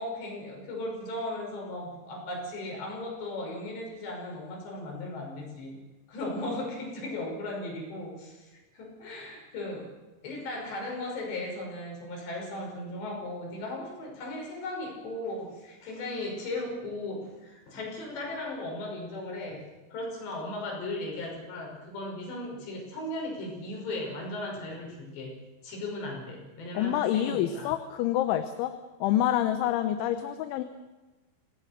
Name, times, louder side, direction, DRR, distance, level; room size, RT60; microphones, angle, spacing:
voice 1, 0.0-5.8 6.1-9.9 10.2-19.6 19.9-25.4 25.6-27.7, left 1 dB, 65° left, -1 dB, 7.8 m, -37 dB
voice 2, 26.7-28.7 29.0-30.6, left 12 dB, 85° left, 9 dB, 3.4 m, -27 dB
26.5 x 18.5 x 6.7 m, 1.1 s
omnidirectional pair, 5.3 m